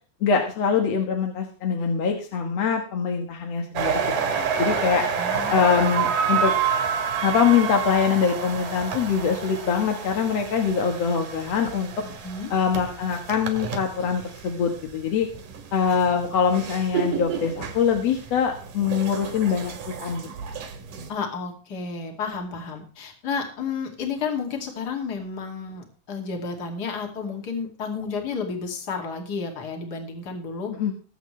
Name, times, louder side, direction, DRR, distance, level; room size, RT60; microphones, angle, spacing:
voice 1, 0.2-4.0 4.3-5.1 5.5-6.5 7.2-12.0 12.5-15.3 15.7-20.3 30.8-30.9, left 6 dB, 60° left, 3 dB, 2.5 m, -23 dB
sound 1, 3.8-14.8 15.2-21.1, right 6 dB, 85° right, 3.4 m, -29 dB
voice 2, 5.2-5.6 12.0-12.5 21.1-30.7, left 5 dB, 35° left, 2 dB, 2.8 m, -31 dB
21.0 x 8.2 x 3.3 m, 0.40 s
omnidirectional pair, 3.6 m